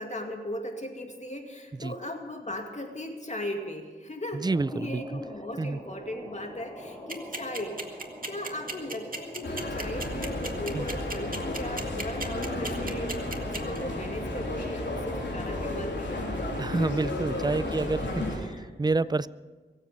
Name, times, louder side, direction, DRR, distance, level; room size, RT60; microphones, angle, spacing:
voice 1, 0.0-16.2 16.6-16.8 17.3-18.7 19.0-19.2, left 1 dB, 40° left, 3 dB, 2.3 m, -38 dB
voice 2, 4.3-5.0 5.6-5.8 10.7-10.9 16.6-18.2 18.8-19.3, right 3 dB, 20° right, 18 dB, 0.5 m, -28 dB
sound 1, 4.4-15.7, equal, 10° left, 5.7 m, -45 dB
sound 2, 7.1-13.8, right 3 dB, 50° right, 2.0 m, -34 dB
sound 3, 9.4-18.4, left 1 dB, 85° left, 3.4 m, -33 dB
23.0 x 8.1 x 6.8 m, 1.4 s
cardioid pair, 45°, 18 cm